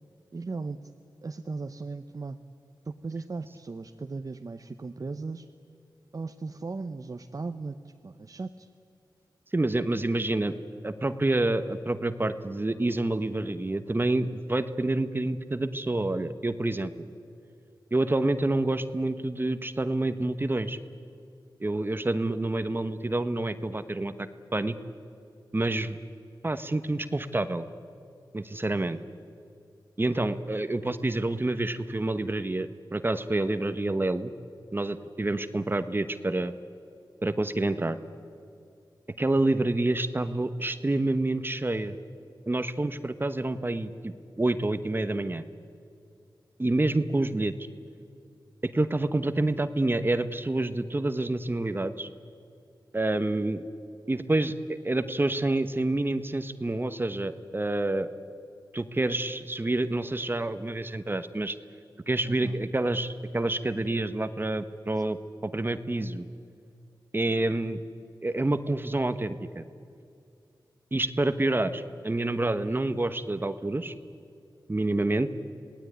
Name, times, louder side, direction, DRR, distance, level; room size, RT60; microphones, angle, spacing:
voice 1, 0.3-0.9 1.2-2.4 2.8-5.5 6.1-8.7 62.2-62.6, right 3 dB, 45° right, 7 dB, 0.9 m, -37 dB
voice 2, 9.5-10.5 10.8-16.9 17.9-20.8 21.6-24.8 25.5-26.0 26.4-27.6 28.3-29.0 30.0-34.3 34.7-36.5 37.2-38.0 39.2-41.9 42.5-45.4 46.6-47.5 48.6-52.1 52.9-53.6 54.1-58.1 58.7-61.6 62.1-65.2 65.4-66.2 67.1-67.8 68.2-69.6 70.9-73.9 74.7-75.3, right 2 dB, 25° right, 11 dB, 1.1 m, -28 dB
27.0 x 18.5 x 9.5 m, 2.6 s
wide cardioid pair, 70°, 8 cm